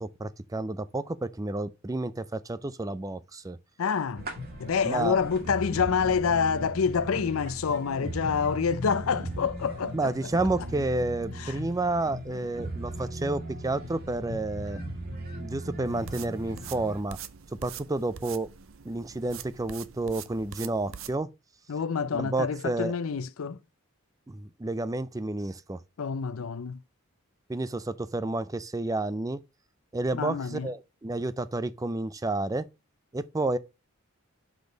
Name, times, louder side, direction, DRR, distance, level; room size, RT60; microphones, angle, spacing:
voice 1, 0.0-3.6 4.8-5.2 9.9-14.8 15.3-17.2 17.6-18.5 18.8-21.3 22.1-22.9 24.3-25.8 27.5-29.4 29.9-32.7 33.1-33.6, right 2 dB, 15° right, 0.4 m, -30 dB
voice 2, 3.8-4.3 4.6-10.1 11.4-11.6 21.7-23.6 26.0-26.8 30.1-30.7, left 6 dB, 80° left, 0.5 m, -27 dB
sound 1, 4.2-17.0, right 1 dB, 45° right, 2.0 m, -38 dB
sound 2, 15.8-21.2, right 8 dB, 65° right, 0.6 m, -44 dB
6.1 x 5.2 x 5.1 m
head